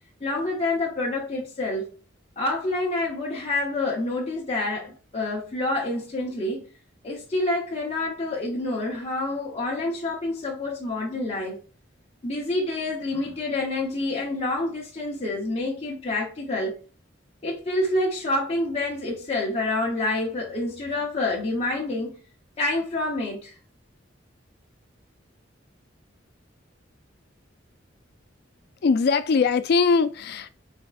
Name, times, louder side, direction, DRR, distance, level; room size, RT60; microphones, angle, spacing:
voice 1, 0.2-1.9 2.4-6.7 7.0-11.6 12.2-16.8 17.4-22.1 22.6-23.5, left 2 dB, 35° left, 0.8 m, -27 dB
voice 2, 28.8-30.5, left 4 dB, 55° left, 0.4 m, -21 dB
4.4 x 3.4 x 2.4 m
head